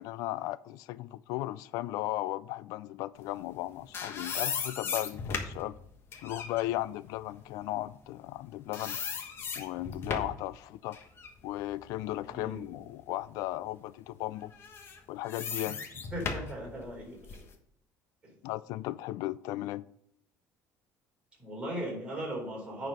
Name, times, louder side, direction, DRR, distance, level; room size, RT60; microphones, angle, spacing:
voice 1, 0.0-5.7 6.2-9.0 9.6-11.0 11.4-14.5 15.1-15.8 18.4-19.8, left 16 dB, 80° left, 0.4 m, -36 dB
sound 1, 3.5-8.4 8.7-10.5 10.9-12.9 13.4-13.5 14.5-17.5, left 5 dB, 40° left, 1.3 m, -38 dB
voice 2, 12.3-12.6 15.7-15.8 16.1-17.4 18.2-18.3 21.4-22.9, right 1 dB, 20° right, 4.0 m, -38 dB
9.7 x 4.5 x 5.3 m
cardioid pair, 135°, 6 cm